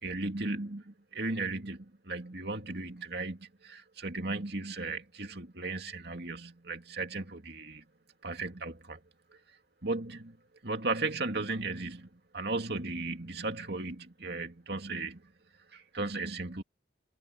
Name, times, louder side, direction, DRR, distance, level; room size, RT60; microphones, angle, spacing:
voice 1, 0.0-7.8 8.2-9.0 9.3-9.4 9.8-10.4 10.6-15.3 15.7-16.6, right 3 dB, 60° right, 2.6 m, -36 dB
head